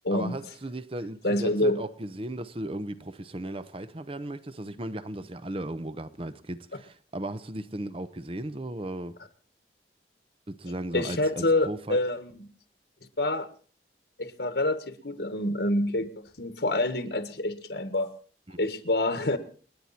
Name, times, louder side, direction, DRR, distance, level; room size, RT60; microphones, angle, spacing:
voice 1, 0.1-9.2 10.5-12.0 18.5-18.6, right 1 dB, 30° right, 0.9 m, -36 dB
voice 2, 1.2-1.8 10.9-12.5 13.2-13.5 14.2-18.1 18.6-19.4, left 1 dB, 70° left, 1.8 m, -27 dB
29.5 x 9.9 x 4.4 m
head